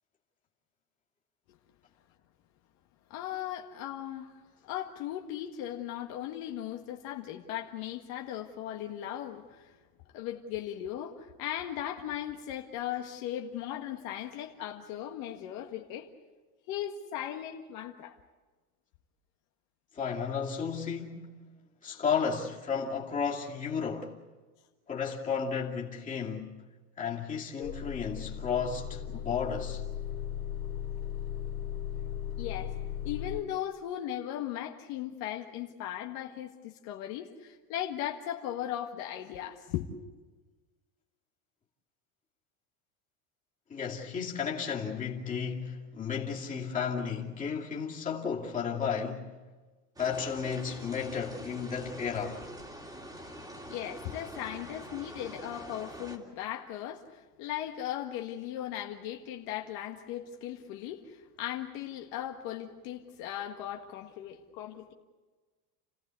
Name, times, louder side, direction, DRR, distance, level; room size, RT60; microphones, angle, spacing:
voice 1, 3.1-4.3 4.6-9.8 10.1-16.1 16.7-18.1 20.3-20.4 27.6-27.7 32.4-32.8 33.0-39.9 53.7-64.9, left 11 dB, 55° left, 1.8 m, -38 dB
voice 2, 19.9-21.4 21.8-24.2 24.9-26.5 27.0-29.8 43.7-49.3 50.0-52.4, left 6 dB, 15° left, 2.6 m, -33 dB
Motor vehicle (road) / Engine starting / Idling, 27.6-33.4, left 9 dB, 75° left, 3.4 m, -37 dB
sound 1, 50.0-56.2, equal, 10° right, 2.5 m, -45 dB
30.0 x 16.0 x 8.3 m
cardioid pair, 165°, 45 cm